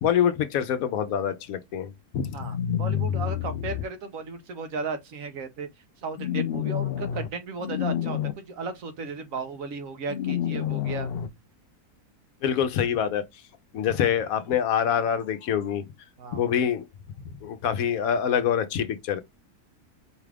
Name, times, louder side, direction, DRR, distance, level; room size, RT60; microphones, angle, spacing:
voice 1, 0.0-2.4 12.4-13.2 13.7-15.8 16.3-16.8 17.4-19.2, left 8 dB, 70° left, 1.0 m, -25 dB
voice 2, 2.3-5.7 6.0-11.1 16.2-16.6, right 4 dB, 65° right, 1.1 m, -35 dB
sound 1, 2.4-3.8 6.2-7.3 7.6-8.3 10.1-11.3, left 10 dB, 90° left, 0.5 m, -28 dB
4.8 x 2.4 x 3.3 m
omnidirectional pair, 1.6 m